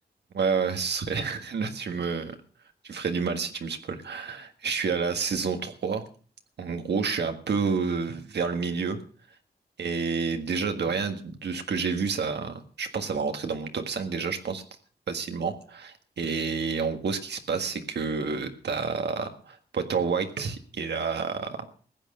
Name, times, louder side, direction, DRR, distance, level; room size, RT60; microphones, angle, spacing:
voice 1, 0.3-2.3 2.8-6.0 6.6-9.0 9.8-14.6 15.1-21.6, right 5 dB, 90° right, 6 dB, 1.7 m, -29 dB
15.0 x 8.9 x 6.6 m, 0.42 s
cardioid pair, 75°, 17 cm